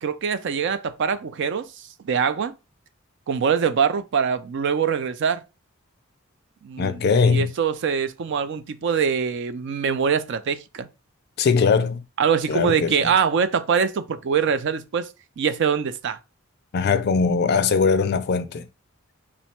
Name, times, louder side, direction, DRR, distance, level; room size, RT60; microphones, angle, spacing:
voice 1, 0.0-1.7 2.0-2.5 3.3-5.4 6.6-10.9 12.2-15.1 15.4-16.2, right 6 dB, 55° right, 0.4 m, -23 dB
voice 2, 6.8-7.5 11.4-12.0 12.5-13.1 16.7-18.7, left 5 dB, 50° left, 0.4 m, -20 dB
3.5 x 2.1 x 4.3 m
head